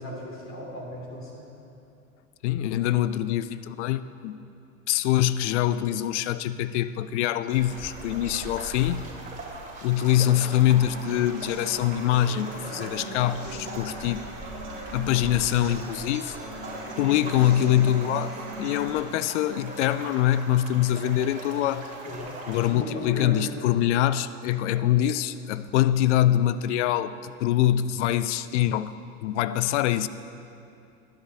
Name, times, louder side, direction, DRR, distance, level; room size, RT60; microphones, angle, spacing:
voice 1, 0.0-1.4 22.0-22.3 22.7-23.4, left 1 dB, 30° left, -3 dB, 2.6 m, -36 dB
voice 2, 2.4-4.4 4.9-9.1 9.8-14.2 14.9-16.3 17.0-21.9 22.5-28.9 29.2-30.1, left 12 dB, 55° left, 15 dB, 0.5 m, -24 dB
sound 1, 7.5-22.7, right 2 dB, 20° right, 2.7 m, -40 dB
sound 2, 10.9-18.9, equal, 80° right, 2.0 m, -39 dB
20.0 x 10.5 x 2.8 m, 2.7 s
figure-of-eight pair, 75°, 44 cm